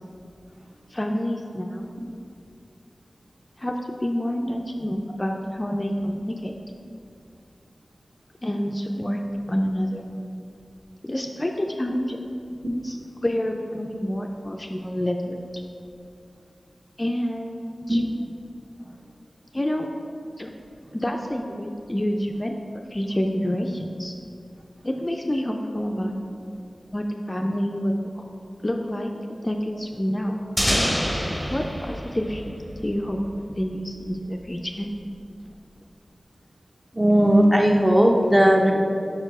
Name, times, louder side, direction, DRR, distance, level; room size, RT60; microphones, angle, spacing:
voice 1, 0.9-1.8 3.6-6.5 8.4-9.2 9.5-10.0 11.0-12.2 12.8-13.0 13.2-15.4 17.0-18.0 19.5-19.9 20.4-20.5 20.9-24.1 24.8-26.1 26.9-28.2 28.6-29.1 29.4-30.4 31.5-32.4 32.8-33.2 33.5-34.9, equal, 25° left, 2 dB, 0.4 m, -28 dB
sound 1, 30.6-33.3, equal, 10° left, 0.9 m, -26 dB
voice 2, 36.9-38.7, equal, 15° right, 0 dB, 0.8 m, -17 dB
4.8 x 4.4 x 5.9 m, 2.5 s
cardioid pair, 45°, 0 cm